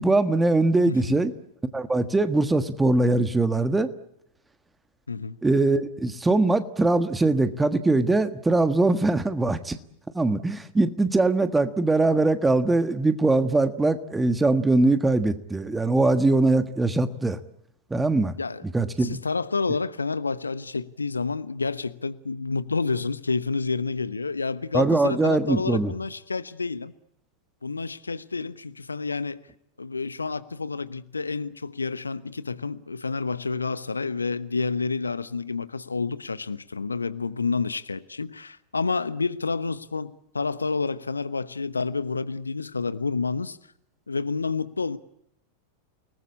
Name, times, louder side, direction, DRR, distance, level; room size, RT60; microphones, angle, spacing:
voice 1, 0.0-1.3 1.7-3.9 5.4-9.8 10.1-17.4 17.9-18.3 18.7-19.2 24.7-25.9, right 2 dB, 10° right, 1.5 m, -22 dB
voice 2, 19.0-26.9 27.6-29.4 29.8-43.6 44.1-45.0, left 4 dB, 80° left, 1.0 m, -29 dB
29.5 x 19.5 x 8.6 m
figure-of-eight pair, 90°, 0 cm